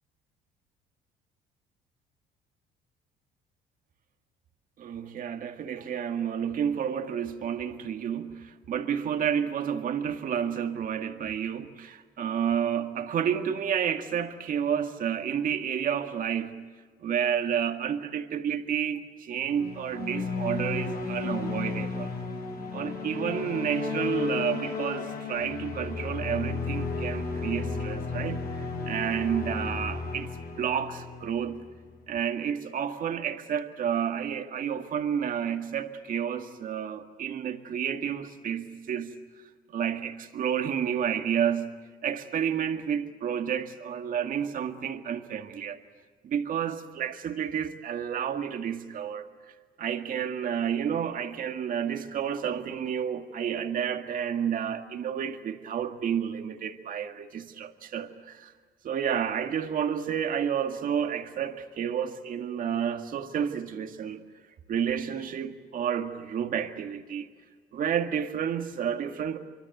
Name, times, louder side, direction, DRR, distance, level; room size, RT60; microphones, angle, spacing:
voice 1, 4.8-16.6 17.0-22.2 22.7-30.3 30.6-31.6 32.1-39.1 39.7-41.7 42.0-45.8 46.2-49.3 49.8-58.5 58.8-64.2 64.7-67.3 67.7-69.4, right 8 dB, 55° right, 6 dB, 1.9 m, -30 dB
sound 1, 19.4-31.9, left 4 dB, 65° left, 7.5 m, -33 dB
24.5 x 24.5 x 7.9 m, 1.5 s
cardioid pair, 110°, 17 cm